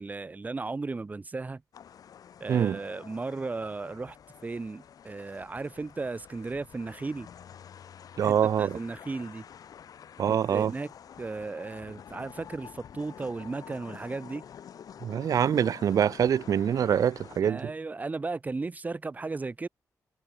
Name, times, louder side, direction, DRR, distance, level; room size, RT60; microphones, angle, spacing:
voice 1, 0.0-1.6 2.4-4.2 4.4-7.3 8.2-9.4 10.3-10.9 11.2-14.5 17.4-19.7, right 3 dB, 25° right, 0.9 m, -35 dB
sound 1, 1.7-17.4, left 8 dB, 70° left, 1.9 m, -49 dB
voice 2, 2.5-2.8 8.2-8.8 10.2-10.7 15.0-17.7, right 8 dB, 65° right, 0.6 m, -25 dB
cardioid pair, 105°, 6 cm